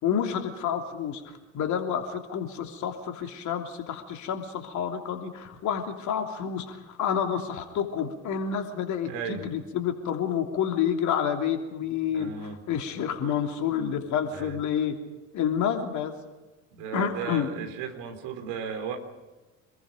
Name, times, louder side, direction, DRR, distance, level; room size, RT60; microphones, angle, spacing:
voice 1, 0.0-12.3 12.7-15.0 15.3-16.1 16.9-17.5, left 8 dB, 50° left, 4 dB, 3.1 m, -29 dB
voice 2, 9.0-9.5 11.8-12.6 14.3-14.6 16.7-19.0, right 6 dB, 55° right, 4 dB, 3.8 m, -35 dB
27.0 x 21.0 x 5.2 m, 1.1 s
figure-of-eight pair, 60°, 38 cm